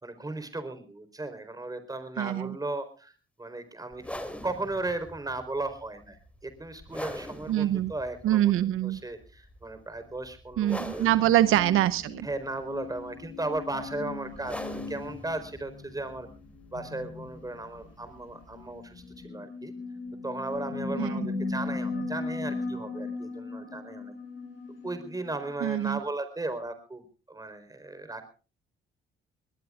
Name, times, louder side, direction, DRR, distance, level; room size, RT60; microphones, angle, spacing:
voice 1, 0.0-3.1 3.4-11.2 12.2-16.3 16.7-19.7 20.2-24.1 24.8-28.3, right 2 dB, 15° right, 10 dB, 4.5 m, -36 dB
voice 2, 2.2-2.5 7.5-7.9 8.2-9.0 10.6-12.3 21.0-21.3 25.6-26.0, right 13 dB, 80° right, 15 dB, 0.8 m, -24 dB
sound 1, 3.9-19.2, left 1 dB, 5° left, 2.9 m, -44 dB
sound 2, 11.1-25.7, left 3 dB, 70° left, 7.7 m, -38 dB
21.0 x 19.5 x 2.5 m, 0.36 s
cardioid pair, 90°, 21 cm